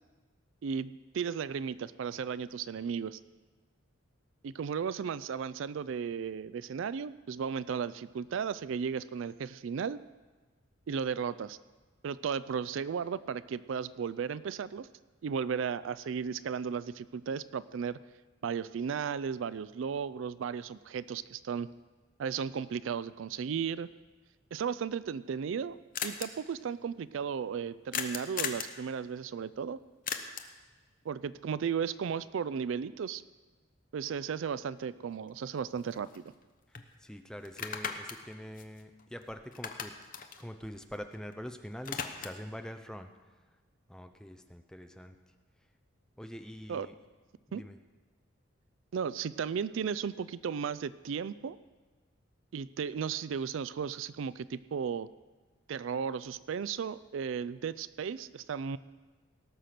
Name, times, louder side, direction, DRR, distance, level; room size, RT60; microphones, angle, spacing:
voice 1, 0.6-3.2 4.4-10.0 10.9-11.6 12.0-14.9 15.2-18.0 18.4-21.7 22.2-23.9 24.5-29.8 31.1-33.2 33.9-36.2 46.7-46.9 47.5-47.6 48.9-51.6 52.5-55.1 55.7-58.8, right 6 dB, 75° right, 17 dB, 0.4 m, -35 dB
sound 1, 25.0-25.1 25.3-25.4 25.6-25.7 25.9-26.3 27.9-28.8 30.1-30.6 34.8-34.9 35.3-36.4 36.7-36.9 37.4-39.2 39.5-41.3 41.6-42.5, left 7 dB, 45° left, 0.8 m, -38 dB
voice 2, 37.0-39.9 40.4-43.1 43.9-45.1 46.2-46.9 47.5-47.8, equal, 5° left, 7 dB, 0.5 m, -44 dB
18.0 x 6.7 x 5.9 m, 1.3 s
head